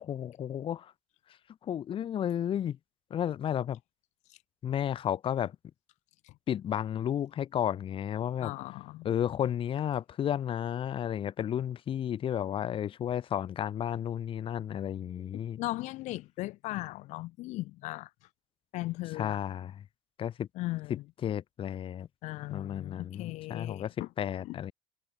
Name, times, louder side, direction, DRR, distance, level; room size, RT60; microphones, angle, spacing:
voice 1, 0.1-0.9 1.6-2.8 3.1-3.8 4.6-5.5 6.5-8.5 9.0-15.6 19.1-19.8 20.2-20.5 20.9-22.1 22.5-24.7, left 10 dB, 45° left, 5.2 m, -32 dB
voice 2, 8.4-9.1 15.3-18.1 18.7-19.4 20.6-21.0 22.2-24.1 24.4-24.6, left 19 dB, 70° left, 4.8 m, -37 dB
cardioid pair, 115°, 12 cm